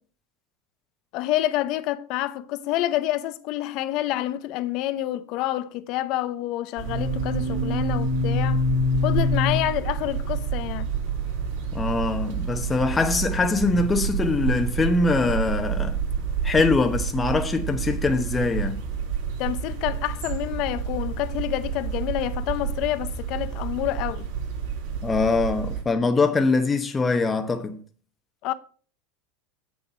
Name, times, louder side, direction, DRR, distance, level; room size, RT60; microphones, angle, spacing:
voice 1, 1.1-8.6 9.0-10.9 19.4-24.3 28.4-28.5, left 14 dB, 55° left, 0.8 m, -28 dB
sound 1, 6.8-25.8, right 3 dB, 75° right, 3.6 m, -28 dB
voice 2, 11.7-16.0 16.4-18.8 25.0-27.8, left 3 dB, 20° left, 1.0 m, -23 dB
7.9 x 6.9 x 5.6 m
supercardioid pair, 115°, 0 cm